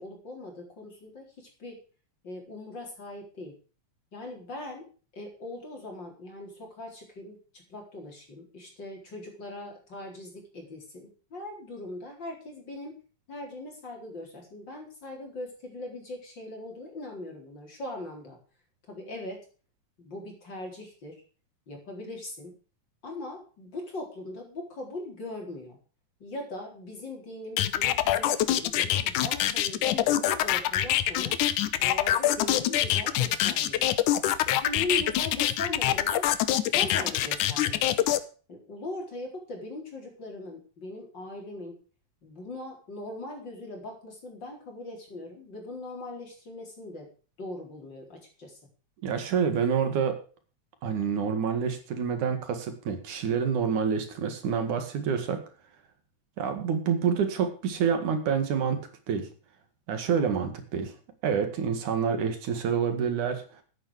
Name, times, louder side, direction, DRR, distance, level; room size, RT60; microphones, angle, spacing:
voice 1, 0.0-1.8 2.2-3.6 4.1-4.9 5.1-13.0 13.3-18.4 18.9-19.4 20.0-21.1 21.7-22.5 23.0-25.8 26.2-31.4 31.8-33.9 34.4-36.3 36.7-38.1 38.5-41.8 42.2-47.1 47.4-48.6, left 2 dB, 35° left, 1 dB, 4.8 m, -40 dB
sound 1, 27.6-38.2, left 12 dB, 80° left, 2.4 m, -25 dB
voice 2, 49.0-50.2 50.8-55.4 56.4-59.3 59.9-60.9 61.2-63.4, right 7 dB, 75° right, 8 dB, 3.4 m, -27 dB
13.0 x 9.6 x 4.9 m, 0.38 s
omnidirectional pair, 3.5 m